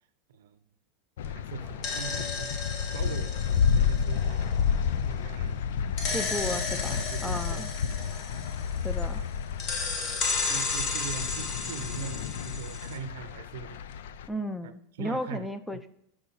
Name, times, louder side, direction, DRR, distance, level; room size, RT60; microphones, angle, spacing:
voice 1, 0.3-0.6 1.2-2.6 2.9-4.8 5.0-5.6 6.1-7.7 8.0-8.1 9.2-9.3 10.4-13.8 14.6-14.7 15.0-15.8, right 7 dB, 85° right, 0.6 m, -42 dB
sound 1, 1.2-14.3, left 7 dB, 80° left, 0.4 m, -31 dB
sound 2, 1.6-5.3 6.0-9.2 9.6-13.0, left 4 dB, 40° left, 1.2 m, -34 dB
voice 2, 6.1-7.7 8.8-9.2 14.3-15.9, equal, 5° left, 0.6 m, -34 dB
5.7 x 4.8 x 5.4 m
supercardioid pair, 125°, 0 cm